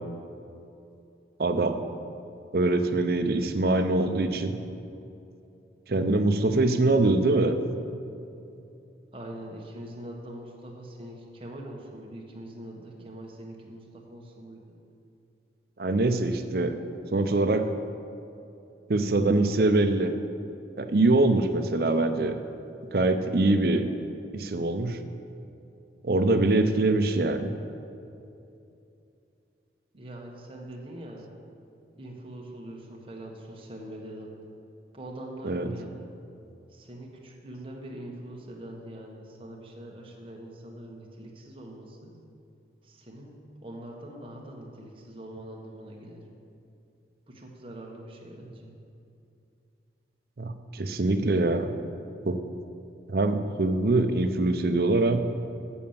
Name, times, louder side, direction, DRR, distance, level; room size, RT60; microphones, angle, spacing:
voice 1, 1.4-1.8 2.5-4.6 5.9-7.6 15.8-16.8 17.1-17.7 18.9-20.1 20.8-22.4 22.9-23.8 24.3-25.0 26.0-27.5 35.4-35.7 50.4-51.7 52.3-52.4 53.1-55.2, right 2 dB, 55° right, 8 dB, 0.6 m, -23 dB
voice 2, 9.1-14.8 29.9-31.3 32.0-34.3 34.9-36.1 36.7-42.1 42.8-46.2 47.3-48.7, right 1 dB, 30° right, -1 dB, 1.2 m, -43 dB
7.6 x 7.1 x 7.2 m, 2.7 s
head